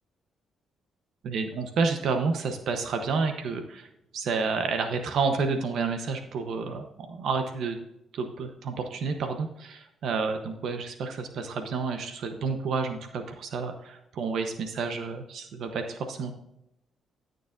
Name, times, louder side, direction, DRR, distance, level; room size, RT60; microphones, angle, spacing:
voice 1, 1.2-7.8 8.1-16.3, right 4 dB, 70° right, 6 dB, 0.9 m, -30 dB
13.5 x 6.7 x 2.6 m, 0.85 s
cardioid pair, 90°, 0 cm